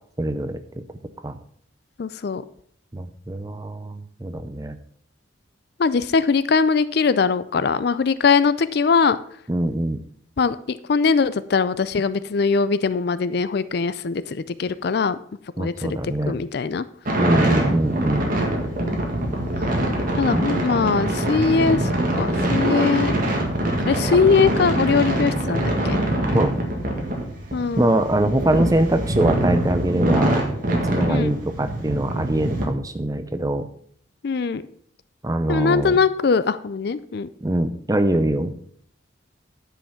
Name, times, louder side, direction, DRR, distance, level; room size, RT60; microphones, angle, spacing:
voice 1, 0.2-0.6 1.2-1.4 2.9-4.8 9.5-10.0 15.6-16.3 17.2-18.3 20.3-20.5 26.3-26.5 27.8-33.7 35.2-36.0 37.4-38.6, right 1 dB, 15° right, 10 dB, 0.6 m, -23 dB
voice 2, 2.0-2.4 5.8-9.2 10.4-15.2 15.6-16.8 20.2-21.9 22.2-23.2 23.9-26.0 27.5-27.9 31.1-31.3 34.2-34.6 35.5-37.3, left 5 dB, 50° left, 15 dB, 0.4 m, -21 dB
sound 1, 17.0-32.6, right 1 dB, 45° right, 1.9 m, -24 dB
10.0 x 5.7 x 5.7 m, 0.63 s
head